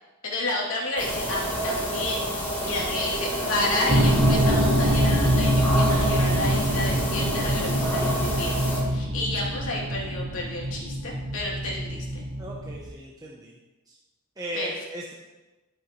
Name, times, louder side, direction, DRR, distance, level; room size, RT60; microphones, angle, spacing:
voice 1, 0.2-8.6 8.9-12.2 14.5-14.7, left 2 dB, 70° left, -4 dB, 3.0 m, -31 dB
sound 1, 1.0-8.8, equal, 10° left, 3.1 m, -28 dB
sound 2, 3.9-12.9, equal, 55° right, 1.6 m, -25 dB
voice 2, 12.4-13.5 14.4-15.1, right 1 dB, 15° right, -3 dB, 1.0 m, -36 dB
11.5 x 9.2 x 3.2 m, 1.1 s
head